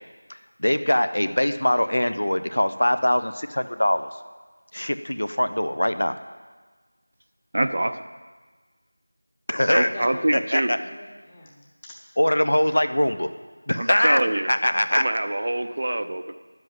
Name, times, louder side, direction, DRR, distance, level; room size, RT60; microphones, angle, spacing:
voice 1, 0.3-4.1 4.7-6.1 9.5-9.9 10.3-10.8 12.2-13.3 13.7-14.2 14.5-15.0, left 1 dB, 75° left, 10 dB, 0.8 m, -22 dB
voice 2, 7.5-7.9 9.7-10.8 13.8-14.5 14.9-16.3, right 1 dB, 40° right, 9 dB, 0.5 m, -25 dB
voice 3, 9.8-11.9, left 1 dB, 10° left, -1 dB, 0.9 m, -42 dB
10.5 x 7.8 x 9.1 m, 1.4 s
figure-of-eight pair, 175°, 0 cm